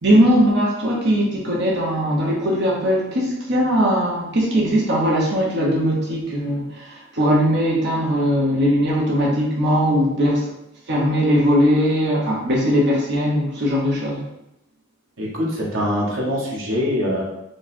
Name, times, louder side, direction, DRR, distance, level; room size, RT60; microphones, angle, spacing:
voice 1, 0.0-10.5 10.9-14.2, equal, 55° right, -4 dB, 1.1 m, -19 dB
voice 2, 15.2-17.2, equal, 80° right, -4 dB, 1.4 m, -23 dB
5.0 x 2.5 x 4.3 m, 0.86 s
head